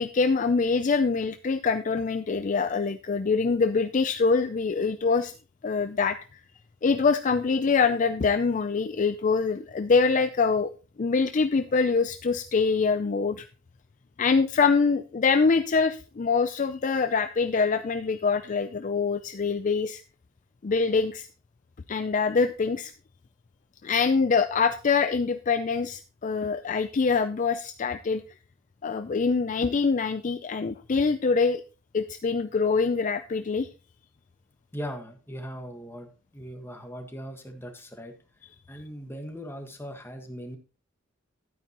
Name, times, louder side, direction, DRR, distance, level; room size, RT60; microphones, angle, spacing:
voice 1, 0.0-5.3 5.6-6.2 6.8-10.7 11.0-13.5 14.2-20.0 20.6-21.3 21.9-22.9 23.8-28.2 28.8-31.6 31.9-33.7, left 4 dB, 40° left, 10 dB, 0.4 m, -24 dB
voice 2, 34.7-38.1 38.7-40.6, equal, 10° left, 4 dB, 1.5 m, -39 dB
11.5 x 9.1 x 2.9 m, 0.34 s
head